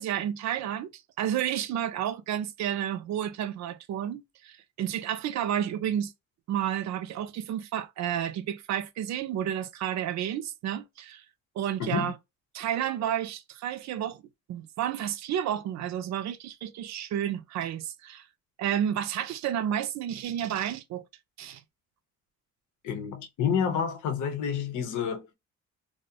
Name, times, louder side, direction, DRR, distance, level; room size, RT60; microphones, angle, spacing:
voice 1, 0.0-6.1 6.5-11.2 11.6-12.1 12.5-14.2 14.5-18.3 18.6-21.0 21.4-21.6, right 10 dB, 65° right, 0.4 m, -31 dB
voice 2, 11.8-12.1 22.8-25.3, left 7 dB, 80° left, 0.8 m, -29 dB
2.5 x 2.0 x 2.8 m
cardioid pair, 90°, 30 cm